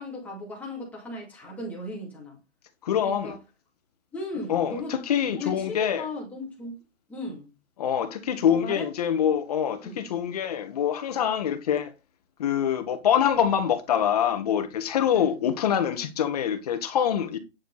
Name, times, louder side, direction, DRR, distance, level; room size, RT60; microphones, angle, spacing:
voice 1, 0.0-2.4 3.0-3.4 4.1-4.9 5.3-6.8 7.1-7.5 8.4-8.9 9.8-10.0 15.1-15.4, left 2 dB, 5° left, 2.7 m, -36 dB
voice 2, 2.8-3.3 4.5-6.1 7.8-11.9 12.4-17.4, left 9 dB, 30° left, 1.3 m, -25 dB
10.5 x 6.5 x 4.1 m
hypercardioid pair, 170°, 38 cm